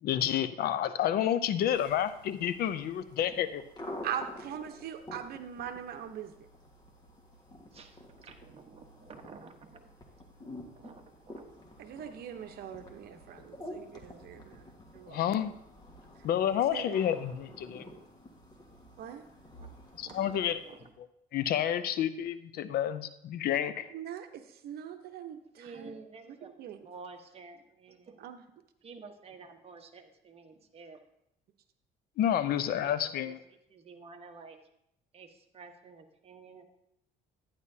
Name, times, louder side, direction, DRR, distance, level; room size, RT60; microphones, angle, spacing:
voice 1, 0.0-3.6 15.1-15.5 16.2-17.9 20.0-20.6 21.3-23.9 32.2-33.4, left 10 dB, 65° left, 13 dB, 0.6 m, -29 dB
sound 1, 1.6-20.9, left 1 dB, 25° left, 1.6 m, -49 dB
voice 2, 4.0-6.3 11.8-14.7 14.9-15.2 16.7-16.9 19.0-19.2 23.9-26.0 26.6-26.8 28.2-28.4, right 9 dB, 65° right, 7 dB, 0.9 m, -41 dB
voice 3, 7.7-10.3 10.7-11.5 13.5-13.8 14.3-14.4 15.3-15.4 19.6-19.7 20.0-20.9 25.6-26.6 26.8-28.2 28.8-31.0 32.4-32.5 32.8-34.6 35.1-36.6, right 4 dB, 35° right, 4 dB, 1.2 m, -51 dB
11.5 x 9.7 x 2.8 m, 0.79 s
cardioid pair, 110°, 17 cm